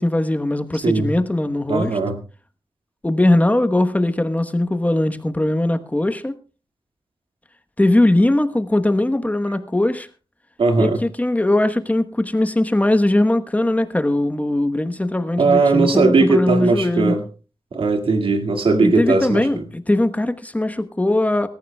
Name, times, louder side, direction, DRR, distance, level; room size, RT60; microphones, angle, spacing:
voice 1, 0.0-2.0 3.0-6.3 7.8-10.1 10.8-17.2 18.8-21.5, left 1 dB, 15° left, 1.1 m, -20 dB
voice 2, 1.7-2.2 10.6-11.0 15.4-17.2 17.7-19.6, right 3 dB, 80° right, 2.1 m, -18 dB
25.0 x 14.0 x 2.3 m
wide cardioid pair, 95°, 9 cm